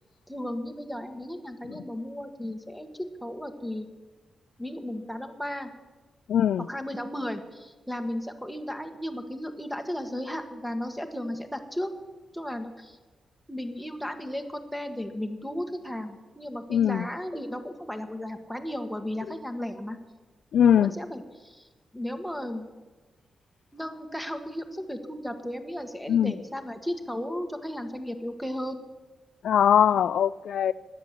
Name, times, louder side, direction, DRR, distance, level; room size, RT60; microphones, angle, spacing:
voice 1, 0.3-3.9 4.6-5.7 6.7-11.9 12.3-13.0 13.5-20.0 20.6-21.7 21.9-22.6 23.7-28.8, left 1 dB, ahead, 5 dB, 1.5 m, -35 dB
voice 2, 6.3-6.7 16.7-17.1 20.5-20.9 26.1-26.3 29.4-30.7, left 9 dB, 80° left, 15 dB, 0.4 m, -21 dB
16.5 x 11.5 x 7.5 m, 1.3 s
wide cardioid pair, 160°, 0 cm